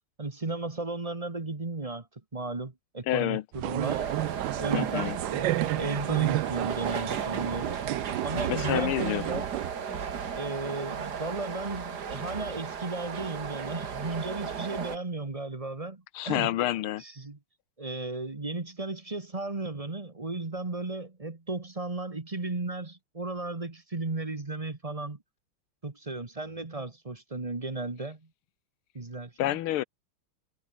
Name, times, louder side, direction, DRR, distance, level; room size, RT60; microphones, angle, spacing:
voice 1, 0.2-2.1 2.3-4.0 4.6-7.8 8.2-9.5 10.3-16.5 17.0-17.4 17.8-25.2 25.8-28.2 28.9-29.6, right 2 dB, 20° right, 1.2 m, -35 dB
voice 2, 3.1-3.4 4.7-5.2 8.5-9.2 16.1-17.0 29.4-29.8, left 14 dB, 80° left, 1.6 m, -28 dB
sound 1, 3.5-9.7, right 16 dB, 75° right, 1.1 m, -31 dB
sound 2, 3.8-15.0, right 7 dB, 50° right, 2.2 m, -35 dB
omnidirectional pair, 2.4 m